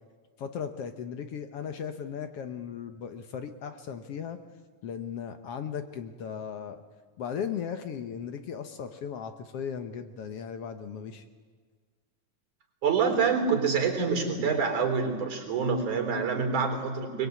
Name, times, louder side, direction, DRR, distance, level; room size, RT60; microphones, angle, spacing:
voice 1, 0.4-4.4 4.8-6.8 7.2-11.2, left 7 dB, 60° left, 8 dB, 1.8 m, -37 dB
voice 2, 12.8-17.3, right 5 dB, 80° right, 4 dB, 5.6 m, -26 dB
23.0 x 22.0 x 9.5 m, 1.5 s
omnidirectional pair, 3.4 m